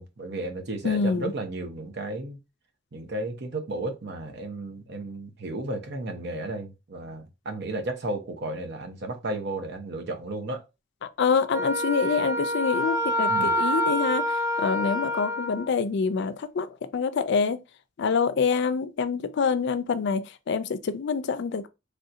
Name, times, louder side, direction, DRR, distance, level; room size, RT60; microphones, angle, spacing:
voice 1, 0.0-2.4 2.9-10.6 13.3-13.5, right 2 dB, 60° right, 0.7 m, -33 dB
voice 2, 0.8-1.3 11.2-16.7 16.9-17.6 18.0-21.7, left 5 dB, 60° left, 0.4 m, -26 dB
Wind instrument woodwind instrument, 11.5-15.7, equal, 15° right, 0.7 m, -27 dB
3.3 x 2.7 x 2.5 m
head